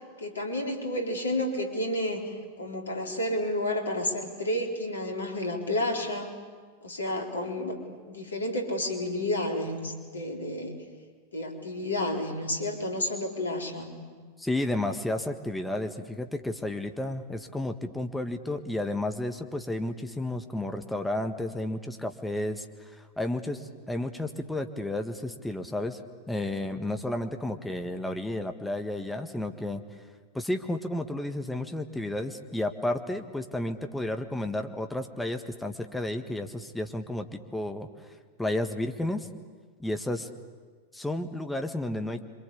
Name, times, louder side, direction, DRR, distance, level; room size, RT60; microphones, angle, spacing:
voice 1, 0.2-6.3 6.8-7.8 8.1-10.8 11.3-13.9, left 1 dB, 75° left, 2 dB, 4.1 m, -31 dB
voice 2, 14.4-26.0 26.3-29.8 30.3-37.3 37.5-38.1 38.4-39.3 39.8-40.3 40.9-42.2, left 1 dB, 5° left, 5 dB, 1.6 m, -32 dB
27.0 x 25.0 x 8.6 m, 1.5 s
figure-of-eight pair, 90°, 0 cm